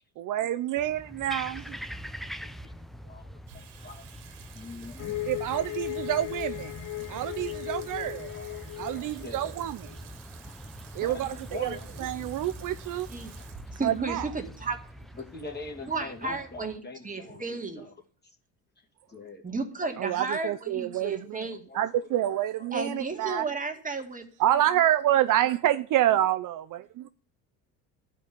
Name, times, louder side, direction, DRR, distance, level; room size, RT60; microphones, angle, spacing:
voice 1, 0.2-1.8 5.2-6.7 7.1-8.3 8.8-9.9 10.9-13.1 13.8-14.3 20.0-21.5 21.7-23.5 24.4-27.1, right 12 dB, 55° right, 0.6 m, -27 dB
sound 1, 0.8-16.8, equal, ahead, 0.5 m, -44 dB
voice 2, 2.6-5.2 8.3-9.4 11.0-12.1 13.4-13.5 15.2-17.4 17.7-17.9 19.1-19.4 21.7-21.8 22.2-22.7, left 3 dB, 25° left, 2.5 m, -43 dB
Water tap faucet / Sink (filling or washing), 3.4-15.8, right 8 dB, 75° right, 1.7 m, -52 dB
sound 2, 5.0-10.0, left 17 dB, 50° left, 0.6 m, -37 dB
voice 3, 13.7-14.8 15.9-17.9 19.4-21.6 22.7-24.2, right 3 dB, 20° right, 2.3 m, -33 dB
12.5 x 5.4 x 8.5 m
supercardioid pair, 90°, 39 cm